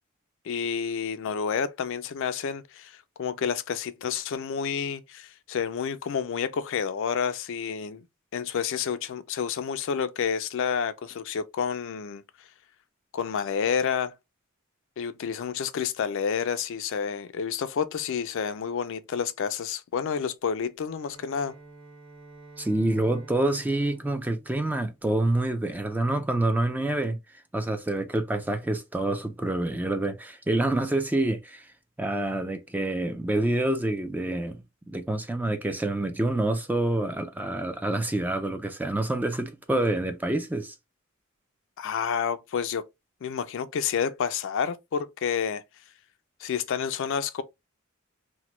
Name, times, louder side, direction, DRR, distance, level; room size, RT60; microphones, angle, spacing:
voice 1, 0.4-8.0 8.3-12.2 13.1-14.2 15.0-21.5 41.8-42.8 43.2-45.6 46.4-47.4, left 7 dB, 65° left, 0.4 m, -29 dB
Bowed string instrument, 20.8-25.4, right 2 dB, 45° right, 1.5 m, -50 dB
voice 2, 22.6-27.2 27.5-31.7 32.0-40.7, right 1 dB, 10° right, 0.3 m, -27 dB
2.9 x 2.1 x 3.0 m
head